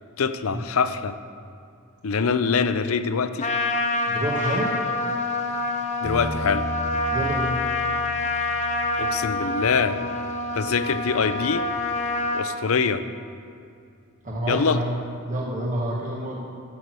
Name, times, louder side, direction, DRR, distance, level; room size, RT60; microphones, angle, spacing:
voice 1, 0.2-1.1 2.0-3.5 6.0-6.7 9.0-10.0 10.5-11.6 12.3-13.0 14.5-14.8, left 5 dB, 70° left, 11 dB, 0.6 m, -24 dB
Trumpet, 3.4-12.5, left 2 dB, 30° left, 0.9 m, -27 dB
voice 2, 4.1-4.7 7.1-7.5 14.2-15.0 15.3-16.5, right 1 dB, 35° right, -3 dB, 1.2 m, -28 dB
Bass guitar, 6.0-12.3, right 1 dB, 15° right, 0.5 m, -38 dB
11.5 x 7.8 x 6.2 m, 2.4 s
head